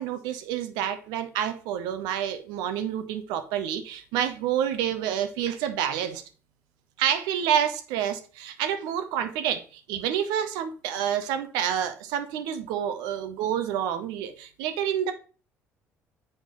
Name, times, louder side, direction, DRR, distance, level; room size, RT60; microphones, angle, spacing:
voice 1, 0.0-6.2 7.0-15.1, right 9 dB, 70° right, 0.7 m, -28 dB
6.5 x 4.7 x 3.8 m
hypercardioid pair, 55°, 7 cm